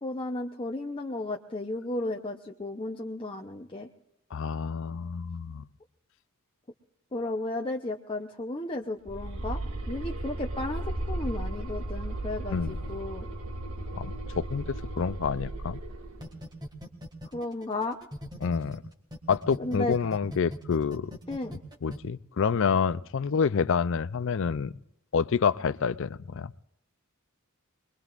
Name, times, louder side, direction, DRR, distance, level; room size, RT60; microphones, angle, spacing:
voice 1, 0.0-3.9 7.1-9.6 9.9-13.3 17.3-18.0 19.6-19.9 21.3-21.5, left 2 dB, 25° left, 0.8 m, -34 dB
voice 2, 4.3-5.6 12.5-12.7 13.9-15.8 18.4-18.8 19.3-21.1 21.8-24.7 25.1-26.5, left 6 dB, 60° left, 0.5 m, -28 dB
sound 1, 9.1-16.3, right 1 dB, 85° right, 2.3 m, -35 dB
sound 2, 16.2-18.8 19.1-22.0, left 1 dB, 20° right, 2.0 m, -40 dB
25.0 x 21.5 x 2.5 m
head